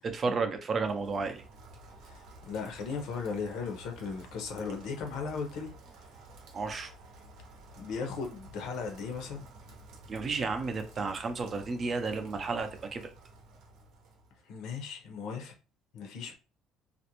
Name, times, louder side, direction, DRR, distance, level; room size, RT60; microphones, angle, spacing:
voice 1, 0.0-1.4 6.5-6.9 10.1-13.0, right 4 dB, 35° right, 0.5 m, -32 dB
Rain, 0.7-14.5, right 1 dB, 70° right, 0.7 m, -52 dB
voice 2, 2.1-5.7 7.8-9.5 14.5-15.5 15.9-16.3, left 5 dB, 70° left, 0.7 m, -37 dB
2.5 x 2.0 x 2.9 m
cardioid pair, 125°, 0 cm